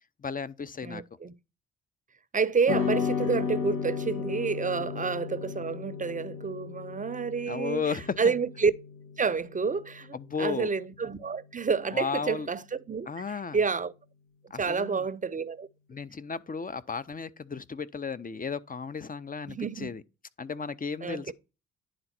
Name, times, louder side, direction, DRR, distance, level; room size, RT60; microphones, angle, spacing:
voice 1, 0.2-1.0 4.8-5.1 7.5-8.3 10.1-10.7 11.9-12.5 13.1-13.6 14.5-15.1 15.9-20.0 20.4-21.3, left 5 dB, 25° left, 0.7 m, -34 dB
voice 2, 0.8-1.3 2.3-8.7 9.2-13.1 13.5-13.9 14.6-15.7 19.5-19.9 21.0-21.3, right 5 dB, 25° right, 0.7 m, -29 dB
sound 1, 2.7-11.2, left 7 dB, 80° left, 1.3 m, -35 dB
10.0 x 3.9 x 4.3 m
hypercardioid pair, 40°, 33 cm